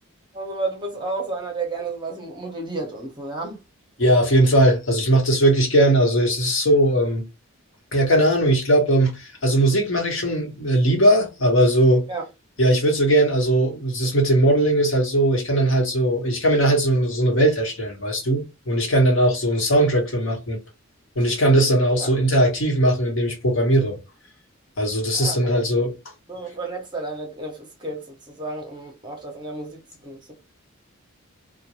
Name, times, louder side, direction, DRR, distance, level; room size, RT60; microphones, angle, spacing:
voice 1, 0.3-3.6 12.1-12.2 22.0-22.1 25.1-25.9 26.3-30.3, right 3 dB, 20° right, 0.8 m, -32 dB
voice 2, 4.0-7.2 7.9-12.0 12.6-20.6 21.1-24.0 24.8-25.9, right 1 dB, 60° left, 1.1 m, -19 dB
2.5 x 2.2 x 3.0 m
head